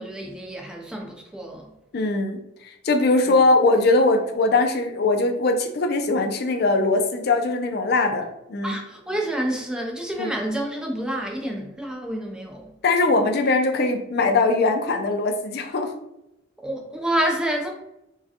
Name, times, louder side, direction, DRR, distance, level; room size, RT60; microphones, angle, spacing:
voice 1, 0.0-1.7 3.2-3.4 8.6-12.7 16.6-17.7, right 1 dB, 5° right, 0.5 m, -28 dB
voice 2, 1.9-2.4 2.8-8.7 10.2-10.3 12.8-15.9, left 3 dB, 55° left, 0.4 m, -21 dB
4.6 x 2.2 x 2.8 m
head